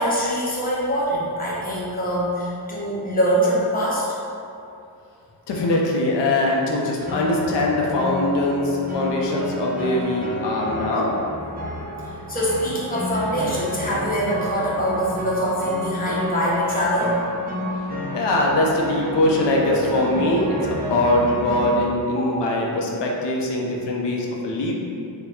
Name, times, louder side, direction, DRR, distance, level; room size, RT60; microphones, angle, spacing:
voice 1, 0.0-4.2 12.3-17.1 22.1-22.4, equal, 20° left, -6 dB, 0.8 m, -23 dB
voice 2, 5.5-11.1 18.1-24.7, left 1 dB, 85° left, -2 dB, 0.6 m, -22 dB
sound 1, 7.0-21.7, left 1 dB, 20° right, 0.6 m, -31 dB
4.6 x 2.2 x 3.6 m, 2.6 s
wide cardioid pair, 130°, 41 cm